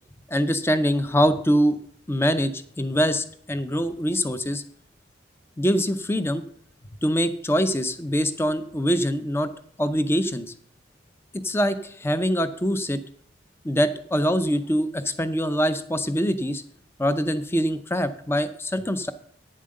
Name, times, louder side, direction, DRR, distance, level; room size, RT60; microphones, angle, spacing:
voice 1, 0.3-1.8 2.1-4.6 5.6-6.4 7.0-9.5 9.8-10.5 11.4-13.0 13.6-16.6 17.0-19.1, equal, 15° left, 12 dB, 0.6 m, -24 dB
9.4 x 7.4 x 6.4 m, 0.63 s
head